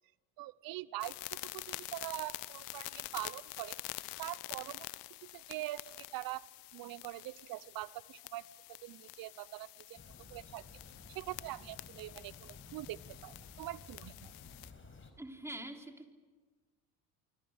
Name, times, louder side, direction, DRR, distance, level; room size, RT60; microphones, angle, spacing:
voice 1, 0.4-3.8 4.2-4.9 5.3-6.5 6.7-8.4 8.7-10.0 10.3-10.6 11.1-14.3, right 18 dB, 55° right, 21 dB, 0.7 m, -43 dB
sound 1, 1.0-14.7, left 21 dB, 65° left, 1.1 m, -47 dB
sound 2, 10.0-15.1, left 4 dB, 30° left, 4.9 m, -54 dB
voice 2, 15.2-16.1, right 1 dB, 5° right, 4 dB, 3.7 m, -45 dB
28.5 x 24.5 x 6.6 m, 1.3 s
hypercardioid pair, 70°, 43 cm